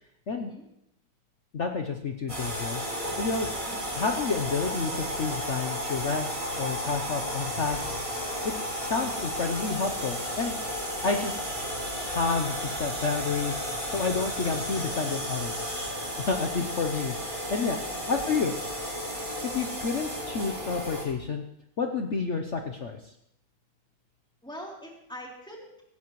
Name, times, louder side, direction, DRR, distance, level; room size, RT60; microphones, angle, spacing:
voice 1, 1.5-3.6 3.9-8.5 8.8-10.6 11.0-11.4 12.0-15.5 16.2-17.8 18.1-18.5 19.5-21.4 21.8-23.0, left 4 dB, 50° left, 4 dB, 0.9 m, -30 dB
sound 1, 2.3-21.0, equal, 15° right, 3.3 m, -33 dB
voice 2, 24.4-25.8, equal, ahead, -3 dB, 3.3 m, -43 dB
17.5 x 15.5 x 3.1 m, 0.77 s
omnidirectional pair, 2.1 m